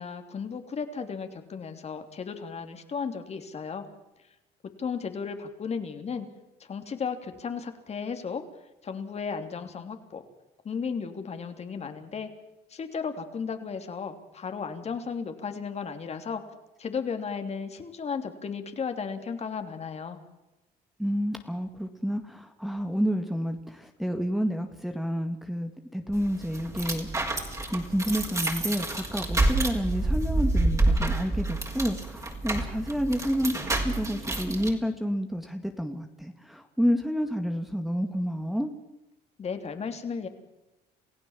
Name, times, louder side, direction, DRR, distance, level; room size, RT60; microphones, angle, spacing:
voice 1, 0.0-3.9 4.8-6.3 6.7-8.4 8.8-10.2 10.6-12.3 12.7-16.4 16.8-20.2 39.4-40.3, left 6 dB, 40° left, 7 dB, 3.2 m, -34 dB
voice 2, 21.0-27.1 27.7-38.7, equal, ahead, 5 dB, 1.9 m, -29 dB
sound 1, 26.1-34.7, right 2 dB, 20° right, 4.5 m, -28 dB
28.5 x 16.0 x 7.4 m, 0.97 s
cardioid pair, 110°, 17 cm